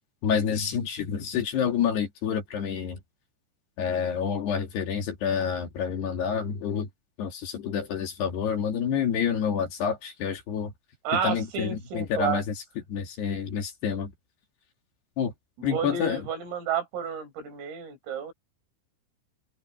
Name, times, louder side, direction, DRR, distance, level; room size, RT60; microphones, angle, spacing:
voice 1, 0.2-3.0 3.8-6.9 7.2-10.7 11.2-12.4 12.9-14.1 15.2-15.3 15.6-16.2, left 7 dB, 60° left, 4.3 m, -28 dB
voice 2, 11.1-12.4 15.7-18.3, right 7 dB, 75° right, 7.4 m, -31 dB
omnidirectional pair, 5.9 m